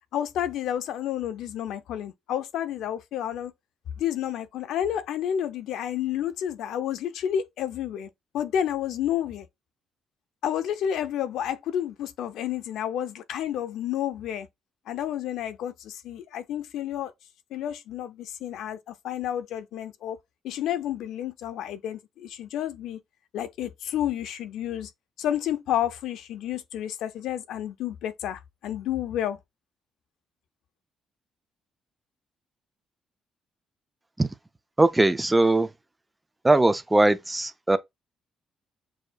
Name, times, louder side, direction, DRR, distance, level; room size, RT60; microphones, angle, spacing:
voice 1, 0.1-3.5 4.0-8.1 8.3-9.5 10.4-14.5 14.9-17.1 17.5-20.2 20.4-23.0 23.3-24.9 25.2-29.4, left 10 dB, 85° left, 0.5 m, -30 dB
voice 2, 34.8-35.7 36.4-37.8, right 2 dB, 15° right, 0.4 m, -20 dB
6.2 x 2.6 x 2.2 m
cardioid pair, 95°, 0 cm